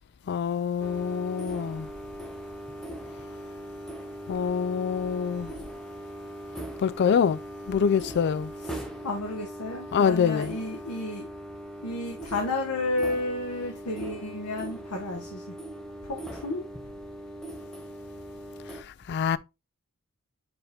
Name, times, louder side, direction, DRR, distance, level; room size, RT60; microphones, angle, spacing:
voice 1, 0.3-1.9 4.3-5.5 6.8-7.4 7.7-8.5 9.9-10.5 19.1-19.4, left 7 dB, 50° left, 0.3 m, -25 dB
sound 1, 0.8-18.8, right 1 dB, 5° left, 0.8 m, -40 dB
voice 2, 8.6-11.3 11.8-15.5 16.0-16.7, left 2 dB, 85° left, 1.2 m, -32 dB
6.6 x 4.2 x 3.4 m
head